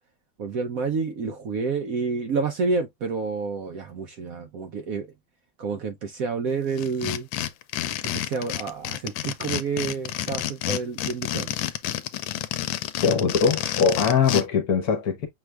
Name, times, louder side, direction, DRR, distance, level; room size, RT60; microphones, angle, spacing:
voice 1, 0.4-5.1 5.6-7.3 8.0-11.6, right 4 dB, 60° right, 1.0 m, -29 dB
sound 1, 6.8-14.4, left 12 dB, 85° left, 1.3 m, -29 dB
voice 2, 13.0-15.3, left 6 dB, 60° left, 1.3 m, -21 dB
6.0 x 2.4 x 3.2 m
omnidirectional pair, 2.0 m